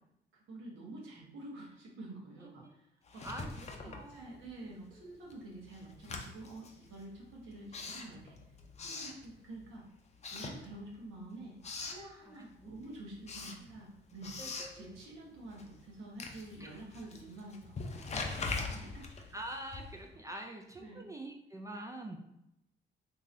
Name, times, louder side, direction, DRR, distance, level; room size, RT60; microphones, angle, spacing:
voice 1, 0.5-2.9 3.1-3.3 3.8-8.3 8.8-9.8 10.3-14.3 14.7-19.0 20.3-20.4 20.8-21.1, right 2 dB, 80° right, -3 dB, 1.1 m, -48 dB
Writing, 3.1-4.7 5.0-9.8 10.1-11.1 11.4-12.1 12.5-20.2, left 3 dB, 35° left, 0.5 m, -43 dB
voice 2, 3.2-4.4 4.9-5.1 12.3-12.7 13.6-13.7 14.4-15.0 16.6-16.8 18.4-18.6 19.3-22.2, right 1 dB, 15° right, 2 dB, 0.3 m, -46 dB
3.8 x 2.7 x 2.6 m, 0.84 s
cardioid pair, 90°, 20 cm